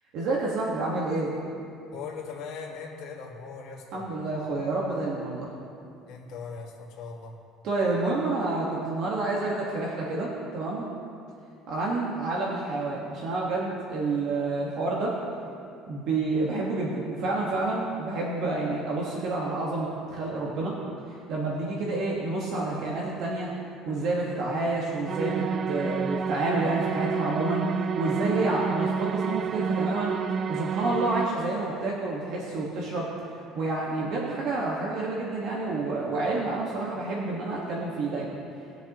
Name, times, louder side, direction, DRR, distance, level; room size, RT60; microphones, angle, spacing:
voice 1, 0.1-1.3 3.9-5.5 7.6-10.9 11.7-15.2 15.9-20.7 21.3-23.5 23.9-30.1 30.5-33.1 33.5-38.4, right 2 dB, 60° right, -4 dB, 1.7 m, -29 dB
voice 2, 1.9-4.1 6.1-7.3, left 5 dB, 65° left, -3 dB, 2.0 m, -39 dB
sound 1, 25.1-31.3, right 6 dB, 35° right, 0.4 m, -29 dB
20.5 x 6.9 x 3.1 m, 2.5 s
cardioid pair, 125°, 0 cm